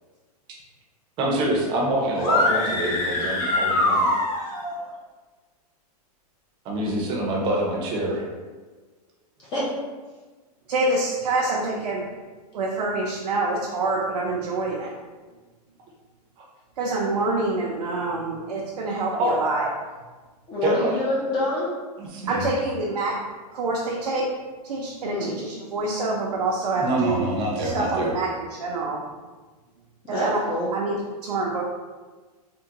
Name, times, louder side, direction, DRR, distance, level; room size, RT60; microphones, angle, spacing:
voice 1, 1.2-4.1 6.7-8.2 19.2-19.4 20.6-21.0 22.0-22.5 26.8-28.1, right 1 dB, 25° right, -2 dB, 0.6 m, -25 dB
sound 1, 2.1-4.8, left 2 dB, 60° left, 0.9 m, -23 dB
voice 2, 10.7-12.0 12.5-14.9 16.8-19.7 22.3-23.2 23.5-24.3 24.6-27.2 27.6-29.0 30.1-30.4 30.7-31.6, right 2 dB, 85° right, -4 dB, 0.6 m, -26 dB
voice 3, 20.5-21.7 25.0-25.3 30.0-30.7, left 1 dB, 20° left, -7 dB, 0.5 m, -26 dB
3.6 x 2.1 x 2.8 m, 1.3 s
supercardioid pair, 155°, 20 cm